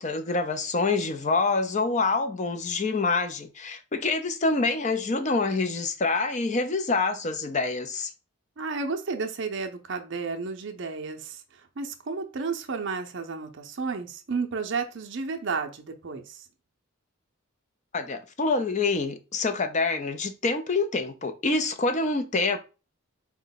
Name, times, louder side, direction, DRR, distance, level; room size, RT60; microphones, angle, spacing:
voice 1, 0.0-8.1 17.9-22.6, left 3 dB, 35° left, 0.4 m, -26 dB
voice 2, 8.6-16.5, right 4 dB, 55° right, 0.5 m, -32 dB
4.4 x 2.1 x 3.8 m
head